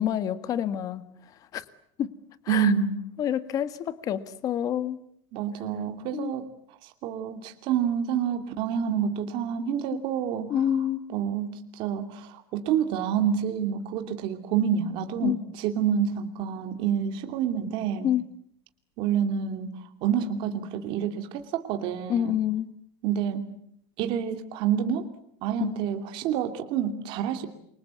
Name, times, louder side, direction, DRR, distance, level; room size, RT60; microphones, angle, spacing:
voice 1, 0.0-1.6 2.0-2.1 2.4-2.7 3.2-5.0 6.1-6.3 10.5-11.0 15.2-15.4 18.0-18.2 22.1-22.7 25.6-25.7, left 10 dB, 30° left, 12 dB, 1.6 m, -28 dB
voice 2, 2.5-3.0 5.3-6.5 6.8-10.6 11.1-18.1 19.0-19.7 20.0-22.4 23.0-23.5 24.0-25.1 25.4-27.5, right 8 dB, 40° right, 6 dB, 2.7 m, -28 dB
28.5 x 25.0 x 8.3 m, 0.70 s
supercardioid pair, 175°, 12 cm